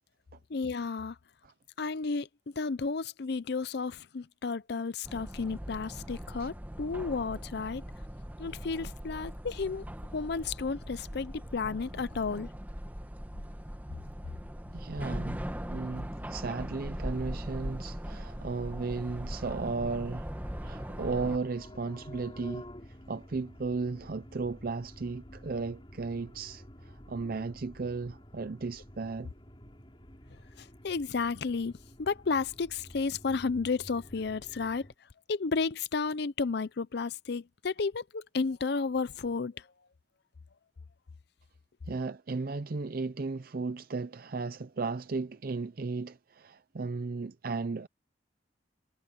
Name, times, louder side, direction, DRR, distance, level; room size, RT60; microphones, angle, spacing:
voice 1, 0.5-1.2 1.8-2.3 2.6-7.8 8.4-9.9 10.1-12.5 30.6-31.7 32.0-34.9 35.3-39.5, left 4 dB, 60° left, 0.6 m, -32 dB
sound 1, 5.0-21.4, equal, 10° right, 1.4 m, -40 dB
voice 2, 14.7-20.3 20.6-29.3 41.9-47.9, right 4 dB, 50° right, 0.5 m, -35 dB
sound 2, 20.3-34.9, equal, 30° left, 4.6 m, -50 dB
head